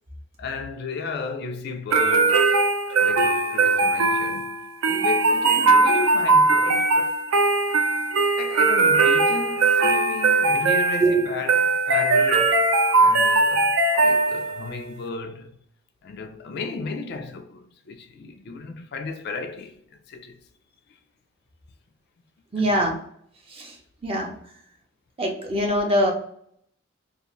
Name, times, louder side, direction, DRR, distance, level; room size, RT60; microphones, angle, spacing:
voice 1, 0.4-2.6 3.0-4.6 4.9-7.2 8.4-12.6 13.0-15.6 16.0-20.4 22.6-22.9, left 4 dB, 55° left, 0.4 m, -34 dB
sound 1, 1.9-14.7, right 3 dB, 80° right, 0.4 m, -20 dB
voice 2, 22.5-23.0 23.5-23.8 24.0-24.3 25.2-26.1, right 1 dB, 30° right, 0.6 m, -22 dB
2.5 x 2.4 x 3.0 m
head